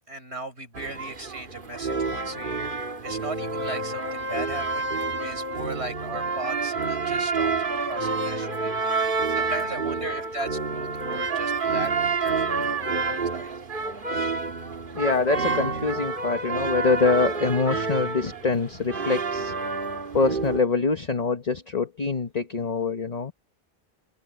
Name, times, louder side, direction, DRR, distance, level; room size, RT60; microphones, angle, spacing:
voice 1, 0.1-2.8 3.0-7.5 7.9-8.7 9.3-11.9 12.2-13.5, right 2 dB, 80° right, 4.8 m, -37 dB
sound 1, 0.7-20.6, right 4 dB, 50° right, 1.9 m, -28 dB
voice 2, 14.9-19.5 20.1-23.3, left 4 dB, 40° left, 1.3 m, -24 dB
omnidirectional pair, 1.1 m